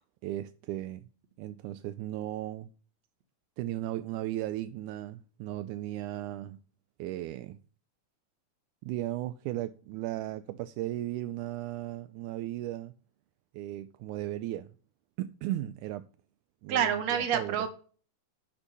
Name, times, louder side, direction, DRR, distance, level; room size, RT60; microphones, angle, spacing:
voice 1, 0.2-1.1 1.4-2.7 3.6-6.6 7.0-7.6 8.8-12.9 13.5-14.7 15.2-16.1 16.6-17.6, right 14 dB, 85° right, 2.0 m, -36 dB
voice 2, 16.7-17.7, right 8 dB, 65° right, 2.3 m, -27 dB
9.9 x 4.4 x 5.5 m
omnidirectional pair, 3.5 m